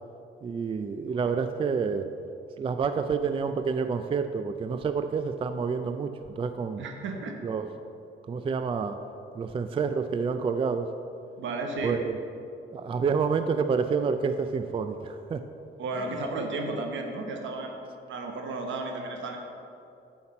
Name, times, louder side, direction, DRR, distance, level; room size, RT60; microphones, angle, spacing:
voice 1, 0.4-2.1 2.6-6.8 7.4-7.7 8.3-9.0 9.3-10.9 11.8-12.2 12.7-15.4, right 5 dB, 25° right, 9 dB, 0.3 m, -28 dB
voice 2, 6.8-7.4 11.4-12.0 15.8-19.4, right 2 dB, 70° right, 3 dB, 1.1 m, -33 dB
8.1 x 5.8 x 4.3 m, 2.7 s
cardioid pair, 90°, 20 cm